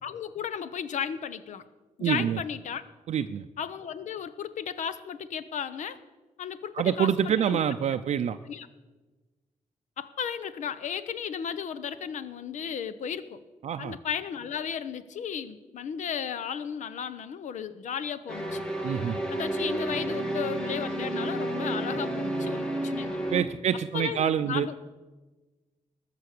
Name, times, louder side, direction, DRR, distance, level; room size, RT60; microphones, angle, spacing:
voice 1, 0.0-1.6 2.0-2.8 3.6-6.0 6.4-7.6 8.5-8.7 10.0-13.4 13.8-18.6 19.3-23.2 23.9-24.7, left 8 dB, 75° left, 14 dB, 0.8 m, -34 dB
voice 2, 2.0-2.4 3.1-3.4 6.8-8.4 13.6-14.0 18.8-19.2 23.3-24.7, right 9 dB, 65° right, 8 dB, 0.5 m, -26 dB
sound 1, 18.3-23.4, right 1 dB, 5° left, 1.4 m, -31 dB
20.5 x 6.9 x 6.6 m, 1.2 s
wide cardioid pair, 170°, 13 cm